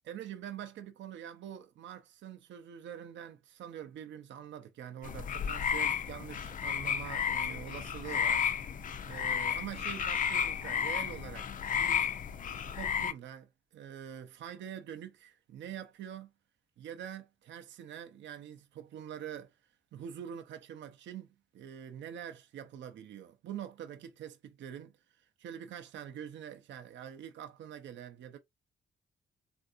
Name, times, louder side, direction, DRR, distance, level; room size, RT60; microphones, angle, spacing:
voice 1, 0.0-8.5 9.0-12.1 12.7-16.3 16.8-19.5 19.9-28.4, right 9 dB, 70° right, 0.5 m, -45 dB
sound 1, 5.0-13.1, left 7 dB, 45° left, 0.4 m, -32 dB
3.5 x 2.6 x 2.4 m
cardioid pair, 105°, 19 cm